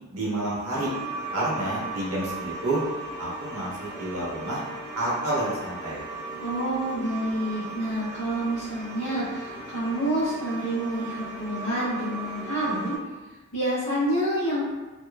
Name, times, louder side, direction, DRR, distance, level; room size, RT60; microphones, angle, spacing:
voice 1, 0.1-0.9 1.3-2.8 3.2-4.6 4.9-6.0, right 1 dB, 85° right, -6 dB, 1.0 m, -29 dB
sound 1, 0.7-13.0, right 3 dB, 45° right, 0.6 m, -37 dB
voice 2, 6.4-13.0 13.5-14.6, right 1 dB, 75° left, -10 dB, 0.8 m, -28 dB
2.9 x 2.2 x 2.3 m, 1.2 s
head